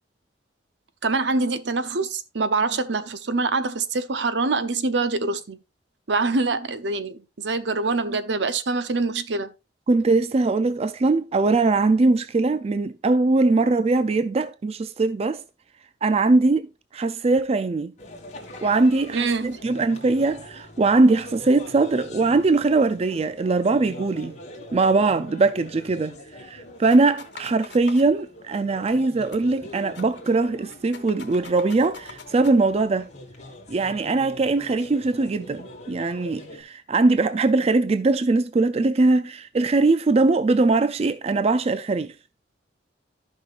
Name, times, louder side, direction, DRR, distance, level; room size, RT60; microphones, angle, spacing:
voice 1, 1.0-5.6 6.1-9.5 19.1-19.5, right 3 dB, 75° right, 0.8 m, -25 dB
voice 2, 9.9-15.4 16.0-17.9 18.6-24.4 24.7-33.1 33.7-42.1, right 3 dB, 35° right, 0.4 m, -21 dB
sound 1, 18.0-36.6, left 1 dB, 40° left, 1.9 m, -43 dB
sound 2, 26.9-28.1 28.9-29.0 29.2-29.4 29.7-30.3 30.7-32.5, left 4 dB, 70° left, 1.4 m, -43 dB
14.0 x 5.6 x 2.5 m
head